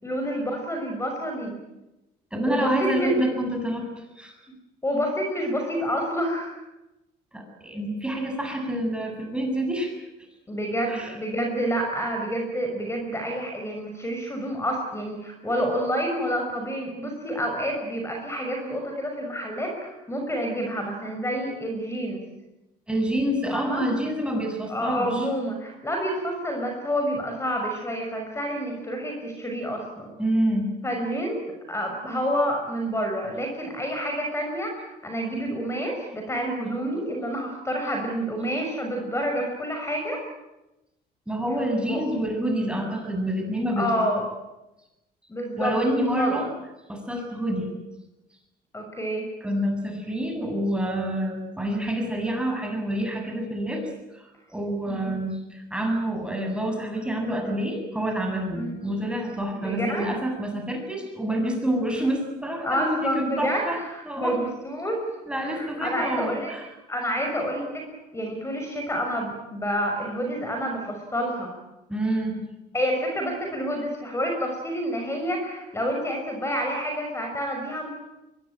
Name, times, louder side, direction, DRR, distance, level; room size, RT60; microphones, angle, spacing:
voice 1, 0.0-1.5 2.4-3.2 4.8-6.5 10.5-22.2 23.5-23.8 24.7-30.1 30.8-31.4 31.7-40.2 41.9-42.0 43.8-44.2 45.3-46.5 48.7-49.3 54.9-55.1 58.5-58.8 59.5-60.1 62.6-65.0 65.3-66.5 66.9-67.8 68.1-71.5 72.7-77.9, equal, 15° left, 2 dB, 6.1 m, -28 dB
voice 2, 2.3-3.9 4.2-4.3 7.3-9.9 10.9-11.2 22.9-25.3 30.2-30.8 41.3-44.1 45.6-46.5 46.9-47.7 49.4-63.8 64.1-64.4 65.3-66.7 71.9-72.5, right 1 dB, 5° right, 3 dB, 7.4 m, -27 dB
23.5 x 21.5 x 9.0 m, 0.97 s
cardioid pair, 110°, 17 cm